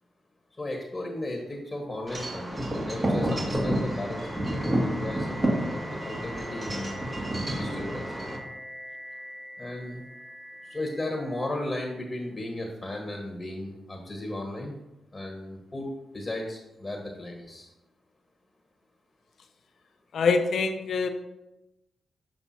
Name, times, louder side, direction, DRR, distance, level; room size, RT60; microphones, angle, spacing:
voice 1, 0.6-5.4 5.7-7.0 7.5-8.0 9.6-10.0 10.6-14.7 15.1-17.7, left 1 dB, 30° left, 1 dB, 1.4 m, -35 dB
Wind chime / Wind, 2.1-8.4, right 1 dB, 30° right, 2.2 m, -29 dB
sound 1, 2.5-12.2, equal, 5° right, 1.3 m, -45 dB
voice 2, 20.1-21.1, left 4 dB, 70° left, 9 dB, 0.6 m, -24 dB
7.4 x 5.4 x 2.8 m, 0.92 s
supercardioid pair, 45°, 0 cm